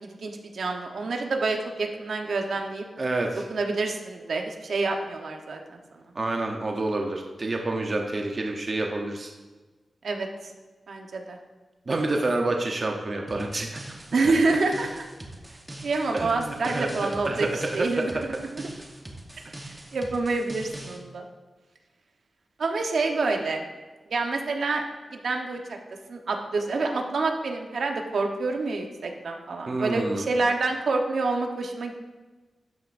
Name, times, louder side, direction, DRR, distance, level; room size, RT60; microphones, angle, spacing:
voice 1, 0.0-2.8 3.5-5.8 10.0-10.3 10.9-11.4 14.1-15.1 15.8-17.5 17.7-18.7 19.9-21.2 22.6-23.6 24.1-24.8 25.1-25.8 26.1-31.9, right 3 dB, 70° right, 3 dB, 1.0 m, -27 dB
voice 2, 3.0-3.5 6.1-9.3 11.9-13.8 16.1-17.5 17.8-18.0 29.7-30.3, right 2 dB, 35° right, 1 dB, 0.8 m, -28 dB
sound 1, 13.3-21.0, right 1 dB, 15° right, 1.1 m, -42 dB
12.5 x 9.4 x 2.6 m, 1.3 s
wide cardioid pair, 175°, 0 cm